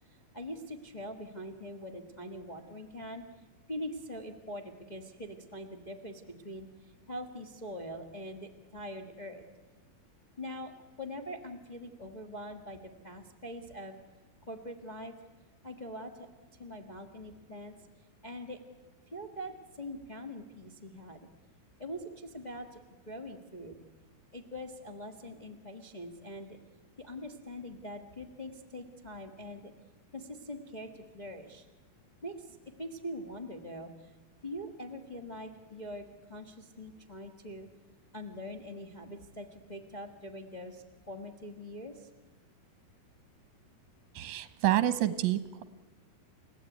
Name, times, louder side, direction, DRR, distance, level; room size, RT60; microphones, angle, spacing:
voice 1, 0.1-3.2 3.7-9.4 10.4-10.7 11.0-14.0 14.5-15.1 15.6-16.3 16.6-17.7 18.2-18.6 19.1-21.2 21.8-23.8 24.3-26.6 27.0-29.7 30.1-31.6 32.2-34.1 34.4-37.7 38.1-42.1, equal, 65° left, 5 dB, 0.4 m, -43 dB
voice 2, 44.2-45.6, right 13 dB, 70° right, 13 dB, 1.9 m, -28 dB
30.0 x 16.5 x 9.3 m, 1.3 s
omnidirectional pair, 4.1 m